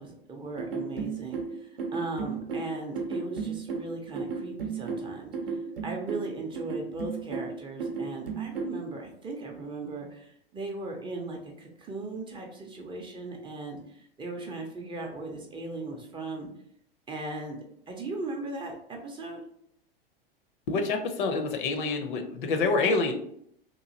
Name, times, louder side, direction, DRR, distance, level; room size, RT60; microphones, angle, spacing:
voice 1, 0.0-5.3 5.8-16.5 17.1-19.4 22.8-23.0, right 2 dB, 15° right, 1 dB, 0.5 m, -38 dB
sound 1, 0.6-8.8, right 5 dB, 75° right, 0.6 m, -34 dB
voice 2, 20.7-23.1, left 4 dB, 60° left, 6 dB, 0.6 m, -27 dB
2.9 x 2.4 x 2.6 m, 0.70 s
figure-of-eight pair, 90°, 29 cm